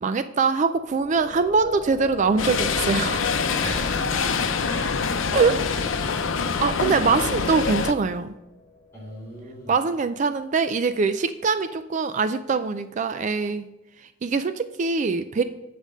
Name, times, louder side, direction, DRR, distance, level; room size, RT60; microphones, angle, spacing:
voice 1, 0.0-3.3 5.3-5.6 6.6-8.3 9.7-13.7 14.0-15.4, right 4 dB, 40° right, 10 dB, 0.3 m, -23 dB
sound 1, 0.8-10.6, left 3 dB, 35° left, 1.8 m, -42 dB
sound 2, 2.4-7.9, left 5 dB, 85° left, 0.6 m, -25 dB
voice 2, 3.6-6.2 8.9-9.7, equal, 15° left, -6 dB, 3.0 m, -37 dB
8.3 x 5.1 x 6.4 m, 0.97 s
head